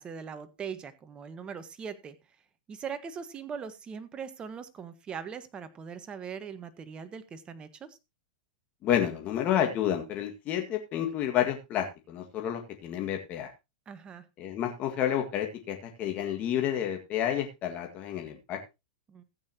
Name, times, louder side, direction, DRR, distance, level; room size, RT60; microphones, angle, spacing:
voice 1, 0.0-2.1 2.7-8.0 13.9-14.2 19.1-19.2, right 6 dB, 25° right, 11 dB, 1.5 m, -40 dB
voice 2, 8.8-13.5 14.4-18.6, left 10 dB, 35° left, 4 dB, 1.9 m, -30 dB
15.5 x 8.9 x 2.9 m, 0.24 s
hypercardioid pair, 120°, 4 cm